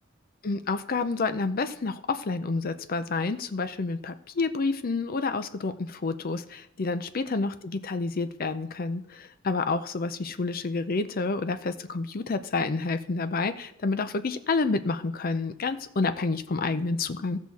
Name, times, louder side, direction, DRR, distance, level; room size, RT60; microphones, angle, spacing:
voice 1, 0.4-17.4, left 3 dB, 45° left, 11 dB, 0.5 m, -29 dB
16.5 x 6.3 x 4.1 m, 0.75 s
head